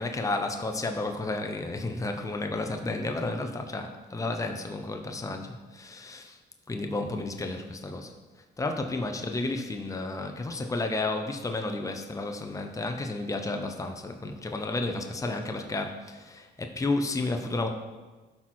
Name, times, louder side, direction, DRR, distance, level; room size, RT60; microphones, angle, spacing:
voice 1, 0.0-6.4 6.7-8.1 8.6-17.7, left 2 dB, 15° left, 5 dB, 0.9 m, -32 dB
12.0 x 5.9 x 4.5 m, 1.2 s
cardioid pair, 90°, 20 cm